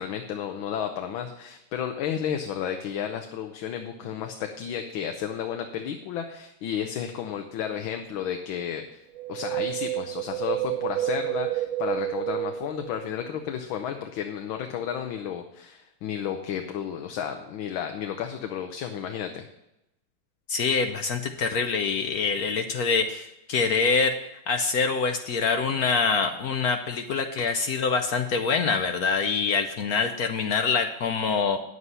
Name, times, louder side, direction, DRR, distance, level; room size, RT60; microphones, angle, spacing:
voice 1, 0.0-9.0 9.3-19.5, left 8 dB, 85° left, 5 dB, 1.6 m, -32 dB
Wind, 9.1-13.5 13.7-13.8, right 15 dB, 80° right, 1.4 m, -30 dB
voice 2, 20.5-31.6, left 5 dB, 65° left, 7 dB, 0.9 m, -25 dB
9.6 x 8.1 x 5.5 m, 0.87 s
omnidirectional pair, 2.1 m